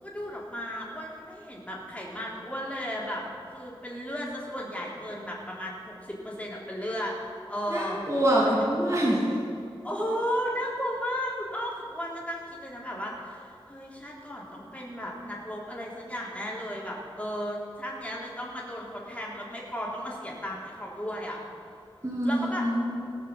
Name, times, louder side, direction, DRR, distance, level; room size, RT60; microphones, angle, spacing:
voice 1, 0.0-3.2 3.5-7.2 7.5-8.0 9.8-21.4 22.2-22.7, equal, 15° left, -4 dB, 3.5 m, -34 dB
voice 2, 7.7-9.2 22.0-22.9, right 1 dB, 35° right, -6 dB, 2.8 m, -25 dB
18.5 x 6.7 x 7.4 m, 2.5 s
wide cardioid pair, 55°, 9 cm